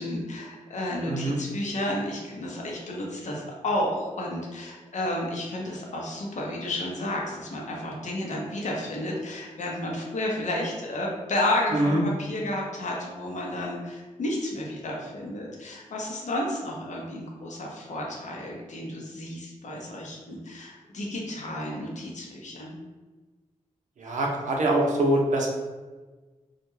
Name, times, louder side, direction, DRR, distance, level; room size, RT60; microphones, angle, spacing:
voice 1, 0.0-22.8, left 1 dB, 70° left, -2 dB, 0.7 m, -31 dB
voice 2, 1.1-1.4 11.7-12.0 24.0-25.5, right 1 dB, 70° right, -1 dB, 0.6 m, -24 dB
2.3 x 2.1 x 3.0 m, 1.3 s
cardioid pair, 55°, 13 cm